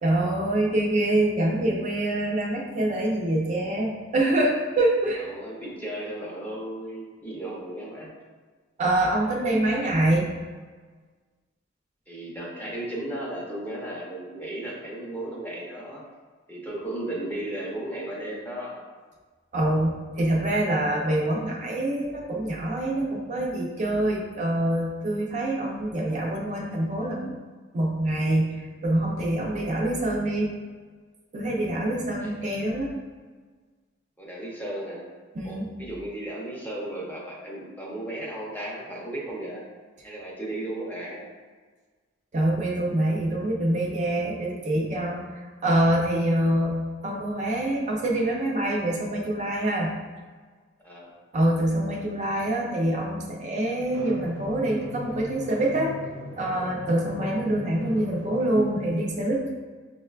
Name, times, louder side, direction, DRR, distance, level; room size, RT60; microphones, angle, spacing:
voice 1, 0.0-5.3 8.8-10.3 19.5-27.4 27.7-30.5 31.3-32.9 35.3-35.7 42.3-45.2 45.6-50.0 51.3-55.9 56.4-59.5, right 1 dB, 35° right, -2 dB, 0.4 m, -25 dB
voice 2, 5.3-8.1 12.1-16.0 16.5-18.8 32.2-32.3 34.2-35.0 35.4-39.6 40.0-41.3 50.8-51.1 57.3-57.4, right 1 dB, 10° left, -4 dB, 0.6 m, -35 dB
Drum, 53.9-58.9, equal, 75° right, 0.7 m, -39 dB
5.1 x 2.1 x 2.3 m, 1.4 s
head